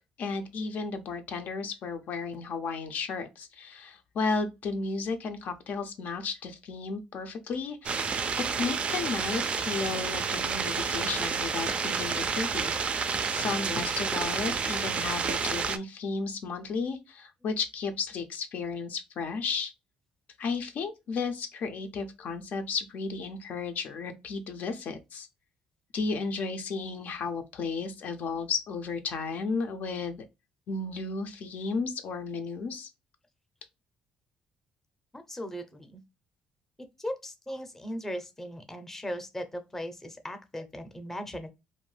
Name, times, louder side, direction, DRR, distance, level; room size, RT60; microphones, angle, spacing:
voice 1, 0.2-19.7 20.4-25.3 25.9-30.2 30.7-32.9, left 4 dB, 65° left, 0.5 m, -34 dB
sound 1, 7.8-15.8, right 5 dB, 40° right, 0.3 m, -30 dB
voice 2, 35.1-36.0 37.0-41.5, equal, 10° left, 0.6 m, -38 dB
2.5 x 2.1 x 3.2 m
cardioid pair, 95°, 3 cm